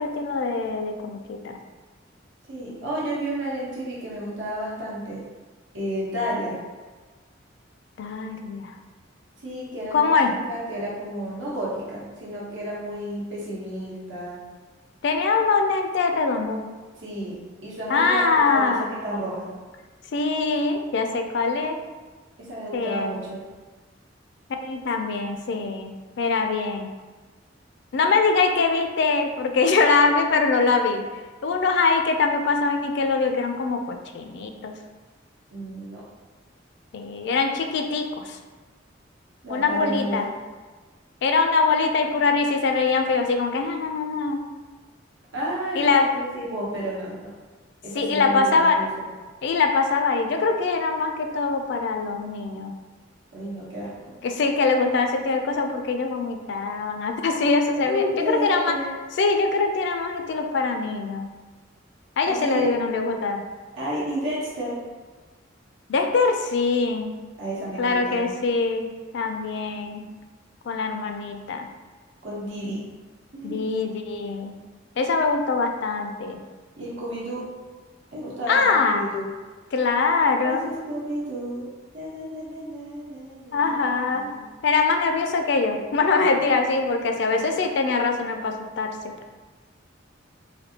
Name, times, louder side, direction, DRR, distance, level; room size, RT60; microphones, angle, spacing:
voice 1, 0.0-1.6 8.0-8.7 9.9-10.4 15.0-16.6 17.9-18.9 20.1-21.8 22.7-23.1 24.6-26.9 27.9-31.0 31.4-34.7 36.9-38.4 39.5-40.3 41.2-44.4 45.8-46.1 47.9-48.8 49.4-52.7 54.2-58.8 59.2-61.3 62.2-63.4 65.9-67.1 67.8-68.9 69.1-70.1 70.7-71.7 73.4-74.6 75.0-76.4 78.5-79.1 79.7-80.7 83.5-84.3 84.6-88.9, left 4 dB, 60° left, 4 dB, 0.3 m, -23 dB
voice 2, 2.5-5.2 5.7-6.6 9.4-14.4 17.0-19.5 22.4-23.4 35.5-36.0 39.4-40.3 45.3-47.3 47.8-49.1 53.3-53.9 57.8-58.9 62.2-62.6 63.7-64.8 67.4-68.3 72.2-72.8 73.3-73.6 76.8-77.5 78.1-79.3 80.4-81.7 81.9-83.8 84.1-84.5, equal, 80° right, -6 dB, 1.0 m, -31 dB
3.3 x 2.6 x 2.8 m, 1.3 s
head